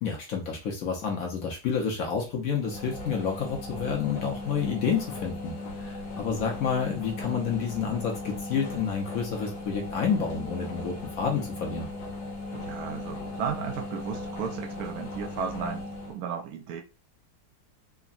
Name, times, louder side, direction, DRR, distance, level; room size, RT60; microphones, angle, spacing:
voice 1, 0.0-11.9, left 6 dB, 65° left, 0.9 m, -29 dB
sound 1, 2.6-16.2, left 2 dB, 80° left, 1.5 m, -37 dB
voice 2, 12.5-16.8, right 7 dB, 65° right, 0.9 m, -35 dB
3.6 x 2.0 x 2.4 m
omnidirectional pair, 2.0 m